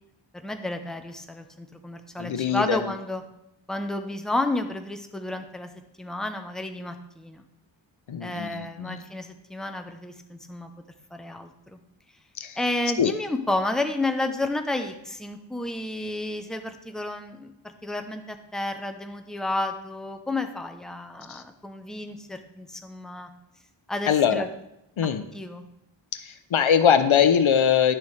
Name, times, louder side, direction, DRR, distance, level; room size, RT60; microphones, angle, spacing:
voice 1, 0.4-3.2 3.7-5.7 6.0-7.4 8.2-10.7 11.1-11.8 12.6-23.3 23.9-24.5 25.3-25.6, left 2 dB, ahead, 6 dB, 0.7 m, -31 dB
voice 2, 2.2-2.9 8.1-9.0 12.4-12.6 13.0-13.1 21.3-21.4 24.1-24.4 25.0-25.2 26.1-27.9, left 8 dB, 85° left, 10 dB, 0.7 m, -22 dB
10.0 x 6.8 x 3.3 m, 0.84 s
wide cardioid pair, 65°, 46 cm